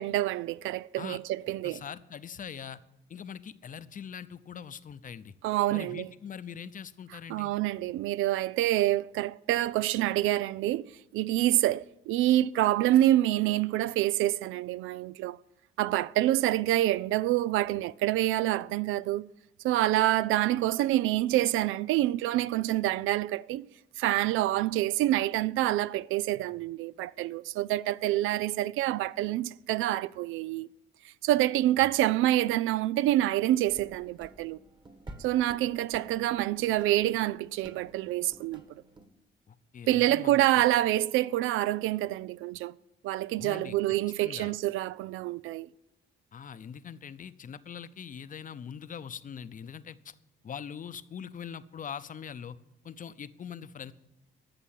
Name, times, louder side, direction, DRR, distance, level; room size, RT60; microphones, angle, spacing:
voice 1, 0.0-1.8 5.4-6.1 7.3-10.9 11.1-15.4 15.8-19.3 19.6-23.7 24.0-30.7 31.2-34.6 35.2-38.6 39.9-42.7 43.0-45.7, right 14 dB, 90° right, 0.4 m, -27 dB
voice 2, 1.6-2.8 3.1-5.3 5.7-7.5 31.8-31.9 39.5-40.7 43.4-43.8 44.2-44.5 46.3-50.1 50.4-52.6 52.8-53.9, left 7 dB, 40° left, 0.7 m, -42 dB
sound 1, 33.7-39.1, right 2 dB, 25° right, 1.5 m, -51 dB
13.0 x 6.8 x 8.9 m
cardioid pair, 90°, 20 cm